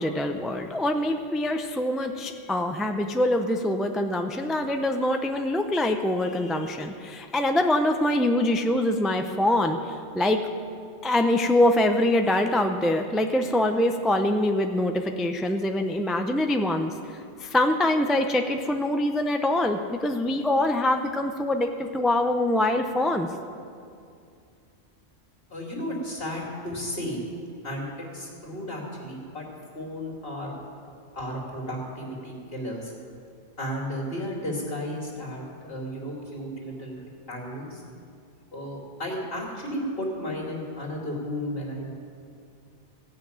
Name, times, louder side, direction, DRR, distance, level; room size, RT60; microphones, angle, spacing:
voice 1, 0.0-10.4 11.0-16.9 17.4-23.3, left 1 dB, ahead, 5 dB, 0.3 m, -24 dB
voice 2, 25.5-27.2 27.6-27.9 28.1-29.5 29.7-30.5 31.1-32.9 33.6-37.0 37.3-37.8 38.5-41.9, equal, 55° left, -2 dB, 2.8 m, -33 dB
16.0 x 5.9 x 8.7 m, 2.4 s
omnidirectional pair, 1.2 m